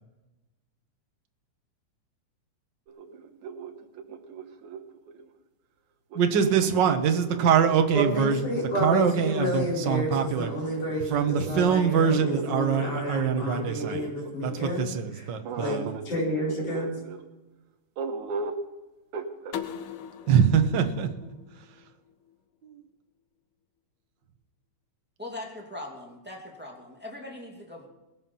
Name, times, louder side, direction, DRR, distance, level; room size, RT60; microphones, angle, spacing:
sound 1, 2.9-5.3 6.1-9.1 9.9-14.7 15.4-17.2 18.0-18.7 19.1-19.6, right 4 dB, 80° right, 2.5 m, -38 dB
voice 1, 6.1-8.4 8.8-10.5 11.1-14.0 14.4-15.9 20.3-21.3 22.6-22.8, right 7 dB, 55° right, 6 dB, 1.4 m, -24 dB
voice 2, 7.9-14.9 15.1-15.3 15.6-15.8 16.0-16.9, left 1 dB, 55° left, -5 dB, 6.1 m, -30 dB
sound 2, 19.5-22.3, left 8 dB, 75° left, 1.2 m, -40 dB
voice 3, 25.2-27.9, left 1 dB, 5° right, -1 dB, 2.0 m, -40 dB
20.0 x 7.5 x 5.5 m, 1.0 s
omnidirectional pair, 3.3 m